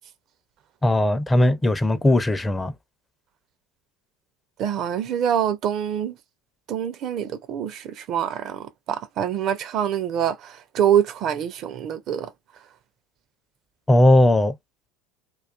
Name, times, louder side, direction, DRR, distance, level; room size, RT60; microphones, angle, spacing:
voice 1, 0.8-2.7 13.9-14.5, left 1 dB, 15° left, 0.4 m, -18 dB
voice 2, 4.6-6.2 6.7-12.3, right 9 dB, 50° right, 0.4 m, -25 dB
2.3 x 2.3 x 2.3 m
hypercardioid pair, 75°, 0 cm